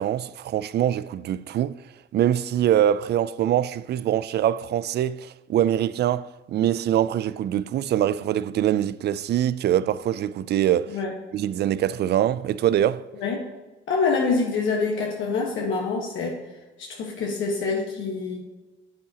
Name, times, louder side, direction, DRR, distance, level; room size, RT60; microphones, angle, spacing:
voice 1, 0.0-1.8 2.1-11.0 11.3-13.0, right 11 dB, 55° right, 0.4 m, -23 dB
voice 2, 13.9-16.4 16.8-18.4, left 4 dB, 80° left, 1.4 m, -26 dB
8.7 x 8.4 x 2.9 m
cardioid pair, 90°, 20 cm